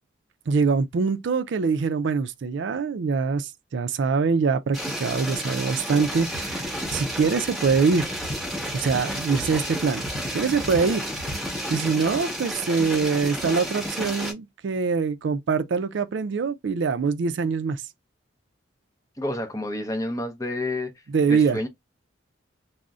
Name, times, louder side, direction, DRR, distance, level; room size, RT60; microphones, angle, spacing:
voice 1, 0.5-8.2 8.7-10.1 10.3-11.1 11.7-17.8 21.1-21.6, right 5 dB, 65° right, 0.4 m, -24 dB
sound 1, 4.7-14.3, equal, ahead, 0.9 m, -31 dB
sound 2, 6.1-11.6, equal, 65° left, 0.8 m, -39 dB
voice 2, 19.2-20.9 21.3-21.7, left 1 dB, 15° left, 0.5 m, -29 dB
2.5 x 2.0 x 3.5 m
head